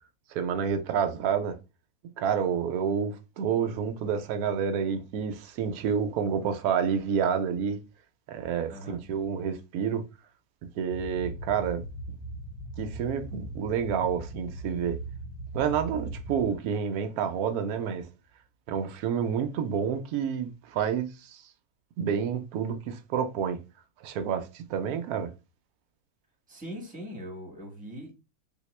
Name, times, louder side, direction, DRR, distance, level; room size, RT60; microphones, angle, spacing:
voice 1, 0.3-1.6 2.2-7.8 8.3-10.0 10.8-11.8 12.8-15.0 15.5-18.1 18.7-21.4 22.0-23.6 24.0-25.3, right 7 dB, 75° right, 0.8 m, -29 dB
sound 1, 10.9-16.6, right 2 dB, 85° left, 1.4 m, -39 dB
voice 2, 26.5-28.2, equal, 5° right, 0.7 m, -41 dB
3.5 x 2.8 x 3.1 m
omnidirectional pair, 2.1 m